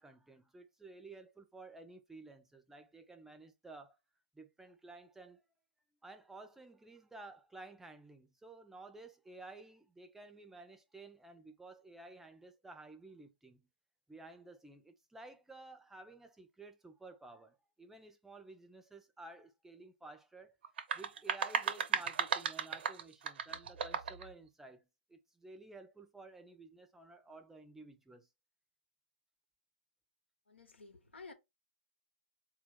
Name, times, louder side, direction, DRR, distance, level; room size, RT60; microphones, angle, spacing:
voice 1, 0.0-4.0 4.3-5.4 6.0-13.6 14.1-20.5 20.9-28.3, right 3 dB, 5° right, 0.6 m, -53 dB
sound 1, 20.6-24.3, right 7 dB, 65° right, 0.7 m, -35 dB
voice 2, 30.5-31.3, left 4 dB, 90° left, 1.1 m, -53 dB
4.3 x 2.5 x 3.6 m
hypercardioid pair, 130°, 6 cm